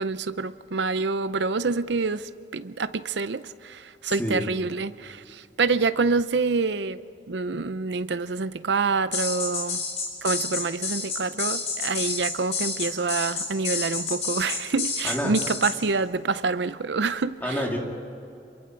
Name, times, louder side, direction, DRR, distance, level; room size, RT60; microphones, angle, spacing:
voice 1, 0.0-7.0 7.3-9.8 10.2-17.6, right 4 dB, 80° right, 0.6 m, -27 dB
voice 2, 4.1-4.5 15.0-15.3 17.4-17.8, equal, 10° left, 2.8 m, -28 dB
sound 1, 9.1-15.7, left 4 dB, 35° left, 4.3 m, -29 dB
27.0 x 23.0 x 4.7 m
head